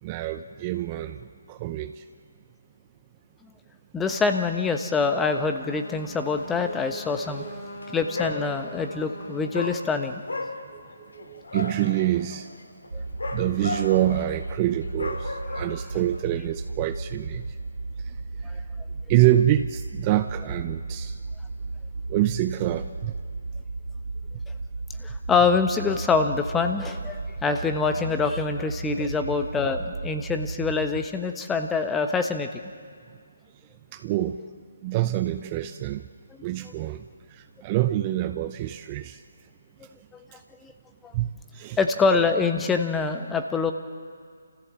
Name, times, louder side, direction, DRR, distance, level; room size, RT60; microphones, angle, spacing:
voice 1, 0.0-2.0 6.6-7.6 10.7-10.8 11.1-12.5 13.3-17.6 18.0-18.2 18.4-18.6 19.1-21.2 22.1-23.1 29.0-29.1 33.9-34.4 34.8-36.1 36.4-39.2 40.3-40.4 41.1-41.8, right 14 dB, 25° right, 10 dB, 0.6 m, -26 dB
voice 2, 3.9-7.5 7.9-10.2 12.9-13.0 18.4-18.6 25.0-32.6 40.1-40.2 40.6-40.7 41.0-41.1 41.8-43.7, left 4 dB, 10° left, 6 dB, 1.1 m, -25 dB
Trumpet, 4.0-9.6, left 1 dB, 60° left, 4.2 m, -42 dB
Dog, 7.7-7.9 8.1-8.9 9.5-16.2, left 2 dB, 75° left, 2.8 m, -35 dB
sound 1, 12.9-31.1, right 3 dB, 80° right, 0.7 m, -35 dB
29.0 x 15.0 x 7.6 m, 2.1 s
figure-of-eight pair, 145°, 0 cm